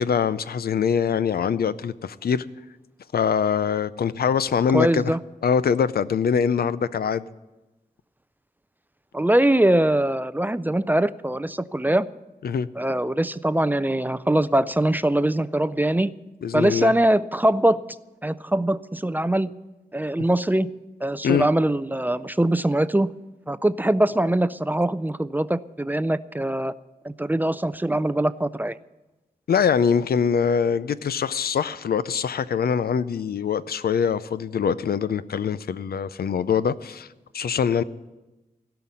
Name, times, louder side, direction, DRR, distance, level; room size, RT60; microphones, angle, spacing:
voice 1, 0.0-2.4 3.1-5.1 5.4-7.2 12.4-12.7 16.4-16.9 21.2-21.5 29.5-37.1 37.3-37.8, left 7 dB, 80° left, 0.5 m, -23 dB
voice 2, 4.7-5.2 9.1-12.1 12.8-16.2 16.5-17.8 18.2-19.5 19.9-20.7 21.0-23.1 23.5-26.7 27.0-28.8, right 1 dB, 10° right, 0.3 m, -22 dB
16.5 x 5.8 x 9.6 m
wide cardioid pair, 105°, 16 cm